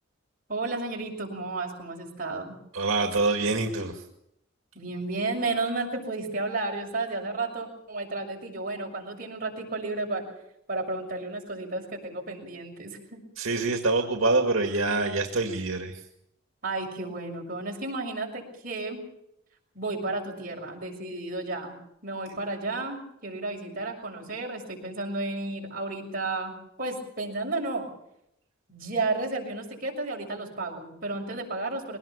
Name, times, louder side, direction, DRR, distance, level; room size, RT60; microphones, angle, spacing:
voice 1, 0.5-2.5 4.7-10.2 10.7-13.2 16.6-19.0 19.7-21.7 22.0-27.9 28.7-32.0, right 2 dB, 45° right, 0 dB, 6.3 m, -32 dB
voice 2, 2.7-4.0 13.4-16.0, right 3 dB, 85° right, 3 dB, 2.1 m, -25 dB
22.0 x 18.5 x 7.1 m, 0.80 s
head